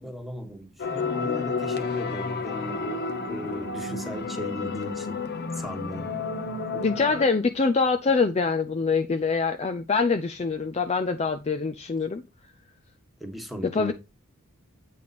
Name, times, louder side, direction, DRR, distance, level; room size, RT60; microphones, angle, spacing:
voice 1, 0.0-5.2 5.5-6.1 13.2-13.9, equal, ahead, 1.5 m, -37 dB
sound 1, 0.8-7.2, left 4 dB, 50° left, 1.0 m, -31 dB
voice 2, 6.7-12.2 13.6-13.9, left 4 dB, 30° left, 0.5 m, -24 dB
8.4 x 4.8 x 4.2 m
head